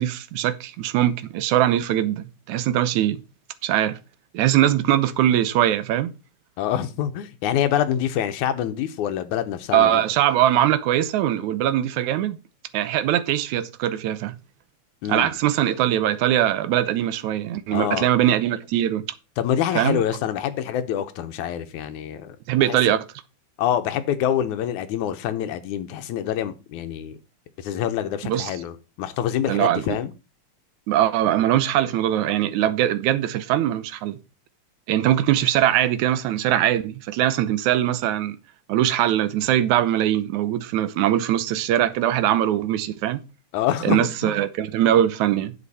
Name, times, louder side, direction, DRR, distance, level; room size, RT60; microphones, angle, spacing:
voice 1, 0.0-3.2 3.6-4.0 4.3-6.1 9.7-12.4 12.7-14.4 15.1-19.0 19.8-20.0 22.5-23.1 28.2-28.5 29.5-30.0 30.9-34.2 34.9-38.4 38.7-43.2 43.8-45.5, right 12 dB, 80° right, 2.2 m, -21 dB
voice 2, 6.6-10.0 15.0-15.3 17.7-18.1 19.4-22.4 22.7-22.8 23.6-27.2 27.6-30.1 43.5-44.4, left 10 dB, 90° left, 2.3 m, -26 dB
10.0 x 7.8 x 4.2 m
omnidirectional pair, 3.4 m